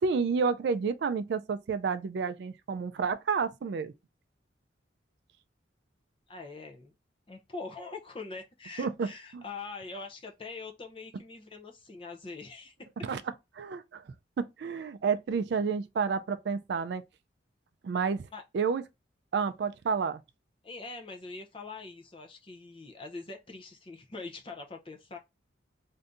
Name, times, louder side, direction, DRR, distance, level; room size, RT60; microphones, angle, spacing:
voice 1, 0.0-3.9 8.8-9.4 13.0-13.2 13.5-14.0 14.4-17.0 17.8-18.3 18.5-18.8 19.3-20.2, right 5 dB, 60° right, 0.3 m, -30 dB
voice 2, 6.3-6.9 7.3-12.7 18.3-18.4 20.6-25.2, left 3 dB, 30° left, 0.5 m, -43 dB
2.6 x 2.5 x 3.4 m
head